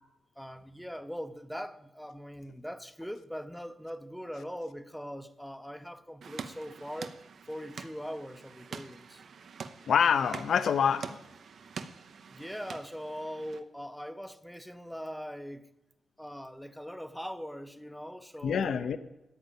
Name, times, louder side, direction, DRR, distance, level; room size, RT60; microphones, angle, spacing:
voice 1, 0.4-7.2 7.5-9.2 12.3-15.6 16.2-18.9, equal, ahead, 0.7 m, -41 dB
sound 1, 6.2-13.6, right 5 dB, 55° right, 0.8 m, -45 dB
voice 2, 9.9-11.2 18.4-19.0, left 7 dB, 65° left, 0.7 m, -26 dB
13.5 x 9.0 x 7.3 m
wide cardioid pair, 175°, 0 cm